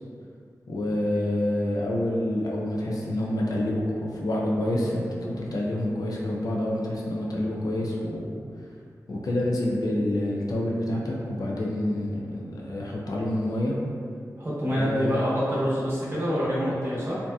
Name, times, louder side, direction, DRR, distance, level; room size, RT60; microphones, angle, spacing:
voice 1, 0.7-8.3 9.1-13.7 14.7-15.2, left 1 dB, 65° left, -3 dB, 0.4 m, -27 dB
voice 2, 14.4-17.2, equal, 35° right, -9 dB, 0.8 m, -26 dB
2.7 x 2.2 x 2.2 m, 2.3 s
wide cardioid pair, 110°, 7 cm